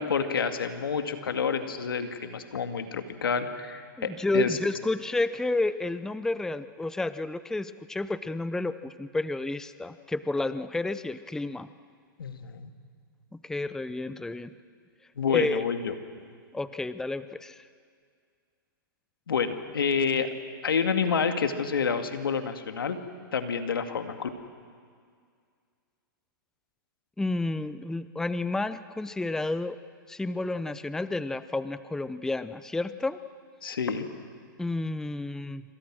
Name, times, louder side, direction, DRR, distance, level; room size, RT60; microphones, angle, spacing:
voice 1, 0.0-4.6 12.2-12.7 15.2-15.9 19.3-20.3 20.6-23.0 23.3-24.3 33.6-34.1, left 6 dB, 85° left, 7 dB, 2.2 m, -28 dB
voice 2, 4.0-11.7 13.4-14.5 15.3-15.6 16.5-17.7 27.2-29.8 30.1-33.2 34.6-35.6, left 2 dB, 5° left, 14 dB, 0.7 m, -30 dB
27.5 x 26.0 x 6.3 m, 2.1 s
hypercardioid pair, 125°, 12 cm